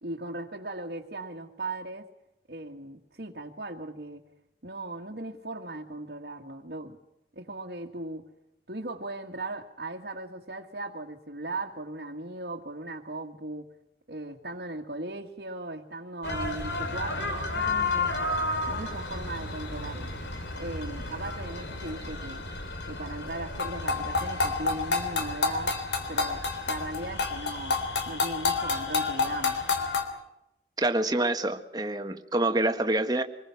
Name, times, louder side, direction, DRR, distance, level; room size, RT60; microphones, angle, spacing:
voice 1, 0.0-2.1 2.5-4.2 4.6-7.0 7.3-8.3 8.7-13.6 14.1-18.3 18.7-20.1 20.6-22.4 22.9-25.8 26.1-27.8 28.1-29.6, right 2 dB, 65° right, -1 dB, 1.8 m, -38 dB
sound 1, 16.2-30.0, left 3 dB, 80° left, 3.4 m, -30 dB
voice 2, 30.8-33.2, right 2 dB, 20° right, 6 dB, 1.5 m, -26 dB
26.0 x 21.0 x 6.0 m, 0.86 s
head